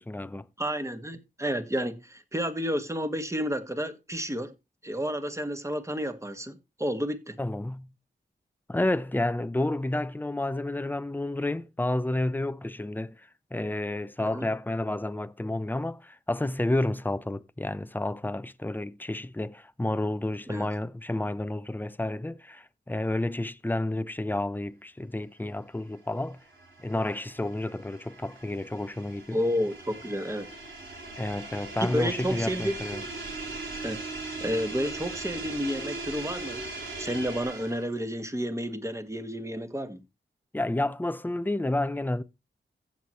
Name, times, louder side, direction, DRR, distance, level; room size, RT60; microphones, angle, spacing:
voice 1, 0.0-0.4 7.4-7.9 8.7-13.2 13.5-26.4 26.8-29.4 31.2-33.0 40.5-42.2, left 1 dB, 10° left, 0.7 m, -30 dB
voice 2, 0.6-4.5 4.8-7.4 14.2-14.5 20.5-20.7 29.3-30.5 31.8-32.8 33.8-34.0 34.4-36.6 37.0-40.0, equal, 15° right, 1.5 m, -31 dB
sound 1, 26.1-38.0, right 3 dB, 75° right, 3.5 m, -39 dB
15.5 x 6.1 x 3.1 m
cardioid pair, 45°, 20 cm